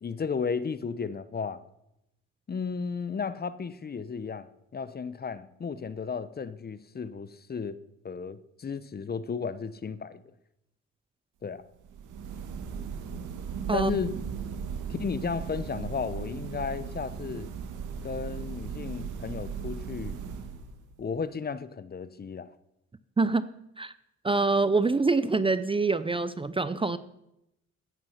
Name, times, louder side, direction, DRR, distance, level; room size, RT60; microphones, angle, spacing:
voice 1, 0.0-1.6 2.5-7.8 8.0-10.2 11.4-11.6 13.7-14.1 14.9-17.5 18.0-20.2 21.0-22.5, left 5 dB, 30° left, 0.8 m, -34 dB
sound 1, 11.8-21.0, right 6 dB, 80° right, 1.6 m, -37 dB
voice 2, 23.2-23.5 23.8-23.9 24.2-27.0, right 3 dB, 20° right, 0.6 m, -25 dB
14.5 x 9.6 x 5.7 m
cardioid pair, 90°, 30 cm